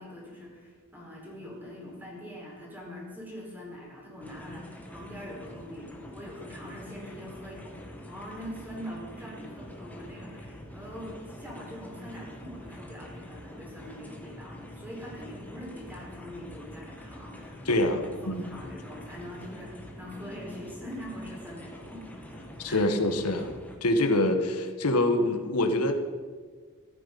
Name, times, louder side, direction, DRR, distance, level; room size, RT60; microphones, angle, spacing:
voice 1, 0.0-22.8, equal, 10° right, -3 dB, 4.6 m, -43 dB
sound 1, 4.2-23.8, equal, 5° left, 1.7 m, -45 dB
voice 2, 17.6-18.5 22.6-23.5 23.8-25.9, left 1 dB, 80° left, 5 dB, 1.5 m, -25 dB
14.5 x 12.5 x 5.4 m, 1.5 s
head